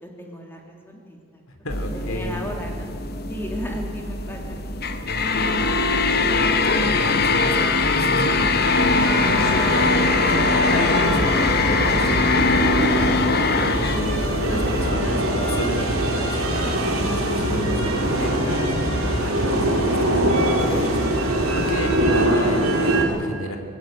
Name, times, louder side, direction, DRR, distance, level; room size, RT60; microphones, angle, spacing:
voice 1, 0.0-1.4 1.8-2.9 3.3-4.6, left 1 dB, 10° left, 1 dB, 3.0 m, -35 dB
voice 2, 1.5-2.4 5.1-5.7 6.1-9.9 10.7-11.2 11.6-13.1 13.8-16.4 17.0-18.7 19.0-21.0 21.5-23.6, left 1 dB, 85° left, 6 dB, 3.1 m, -31 dB
sound 1, 1.7-14.9, left 3 dB, 50° left, 1.2 m, -22 dB
sound 2, 8.7-23.1, right 1 dB, 90° right, 4.7 m, -24 dB
sound 3, 11.1-22.2, equal, 70° left, 6.0 m, -29 dB
20.0 x 16.5 x 9.1 m, 2.3 s
head